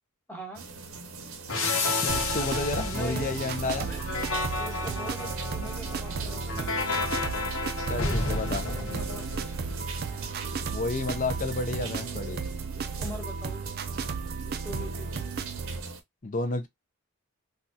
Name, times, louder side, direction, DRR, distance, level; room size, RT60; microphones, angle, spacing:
voice 1, 0.3-0.6 2.8-3.3 3.7-4.0 4.6-7.5 8.0-9.5 13.0-13.6 14.6-15.1, equal, 10° left, 1.0 m, -42 dB
sound 1, 0.5-16.0, right 4 dB, 70° right, 0.7 m, -42 dB
sound 2, 1.5-10.0, left 3 dB, 60° left, 1.0 m, -31 dB
voice 2, 1.8-3.9 7.9-8.6 10.7-12.4 16.2-16.7, left 3 dB, 35° left, 0.5 m, -31 dB
sound 3, 2.1-15.8, right 5 dB, 45° right, 0.4 m, -34 dB
3.3 x 2.4 x 2.7 m
head